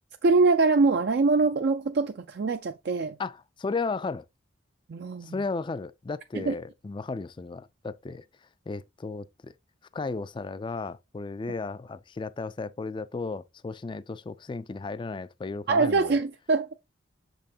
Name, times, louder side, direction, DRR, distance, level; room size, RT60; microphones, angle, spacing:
voice 1, 0.2-3.2 4.9-5.3 6.3-6.5 15.7-16.7, right 3 dB, 55° right, 0.4 m, -23 dB
voice 2, 3.2-4.2 5.2-8.2 8.7-9.5 9.9-16.2, left 3 dB, 25° left, 0.3 m, -34 dB
6.7 x 5.4 x 2.8 m
head